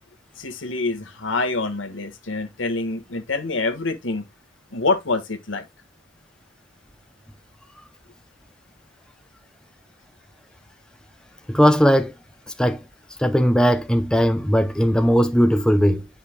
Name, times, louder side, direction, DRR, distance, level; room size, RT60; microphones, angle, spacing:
voice 1, 0.4-4.2 4.7-5.7, left 3 dB, 75° left, 1.5 m, -26 dB
voice 2, 11.5-12.2 12.6-12.8 13.2-16.1, equal, 5° left, 0.5 m, -18 dB
10.0 x 5.5 x 2.2 m
head